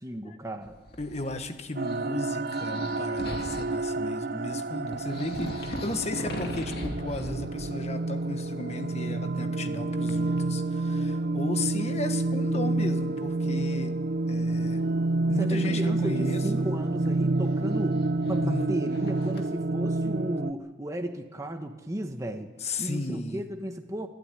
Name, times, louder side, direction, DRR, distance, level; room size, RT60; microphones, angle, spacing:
voice 1, 0.0-0.8 15.4-22.5 22.8-24.1, right 1 dB, 15° right, 4 dB, 1.2 m, -34 dB
sound 1, 0.6-1.5 1.8-3.9 4.6-4.7 4.9-8.0 8.3-8.8 10.0-10.4 11.1-11.2 13.1-13.2 16.3-19.5, left 1 dB, 55° left, 2.2 m, -40 dB
voice 2, 1.0-13.9 14.3-14.8 15.3-16.7 18.3-18.8 22.6-23.5, left 2 dB, 35° left, 8 dB, 1.5 m, -35 dB
sound 2, 1.8-20.5, right 2 dB, 55° right, 0.6 m, -29 dB
24.0 x 13.0 x 9.9 m, 1.3 s
head